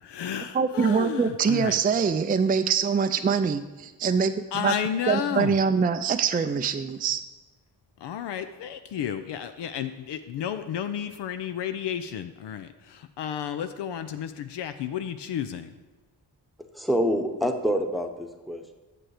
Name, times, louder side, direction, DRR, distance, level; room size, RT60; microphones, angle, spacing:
voice 1, 0.0-1.8 4.5-5.6 8.0-15.7, left 9 dB, 75° left, 9 dB, 0.6 m, -32 dB
voice 2, 0.5-4.3 4.6-4.7 5.1-7.2, right 6 dB, 20° right, 9 dB, 0.4 m, -24 dB
voice 3, 16.7-18.8, equal, ahead, 5 dB, 1.0 m, -26 dB
7.7 x 6.1 x 4.9 m, 1.2 s
supercardioid pair, 45°, 42 cm